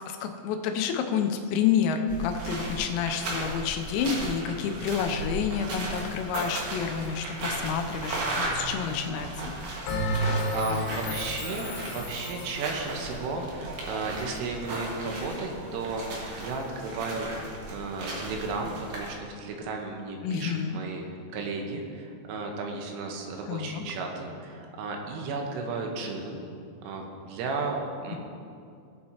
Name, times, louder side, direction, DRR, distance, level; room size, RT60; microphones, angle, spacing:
voice 1, 0.1-9.5 10.7-11.2 20.2-20.8 23.5-23.8, left 7 dB, 85° left, 4 dB, 3.4 m, -29 dB
sound 1, 2.1-19.1, right 2 dB, 55° right, 2.7 m, -36 dB
Bell, 9.9-12.6, equal, 70° left, 3.8 m, -31 dB
voice 2, 10.5-21.0 21.3-26.4 26.8-28.2, right 3 dB, 80° right, 1 dB, 3.5 m, -34 dB
19.0 x 8.6 x 2.9 m, 2.4 s
omnidirectional pair, 5.9 m